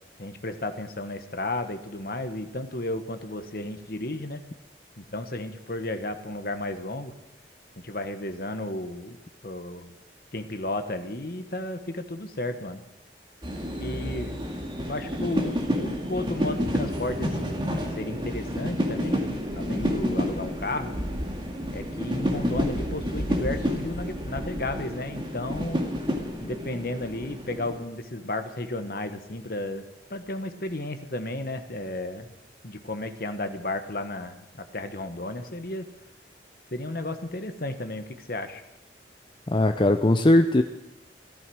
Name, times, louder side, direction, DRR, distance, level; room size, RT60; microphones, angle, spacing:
voice 1, 0.2-4.4 5.0-7.1 7.8-9.2 9.4-9.9 10.3-12.8 13.8-14.4 14.9-19.2 19.5-20.9 21.7-25.8 26.4-29.8 30.1-32.3 32.6-35.9 36.7-38.6, left 2 dB, 55° left, 8 dB, 1.2 m, -33 dB
sound 1, 13.4-27.8, equal, 25° right, 2.1 m, -30 dB
voice 2, 39.5-40.6, left 1 dB, 25° left, 6 dB, 0.5 m, -19 dB
14.0 x 14.0 x 6.3 m, 0.95 s
head